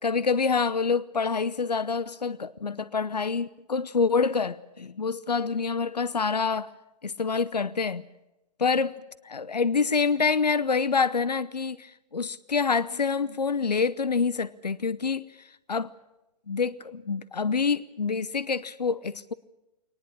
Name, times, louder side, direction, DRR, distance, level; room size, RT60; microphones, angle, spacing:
voice 1, 0.0-6.7 7.0-8.0 8.6-9.0 9.2-15.9 16.5-19.3, left 5 dB, 80° left, 0.8 m, -27 dB
22.0 x 19.5 x 8.5 m
figure-of-eight pair, 125°, 20 cm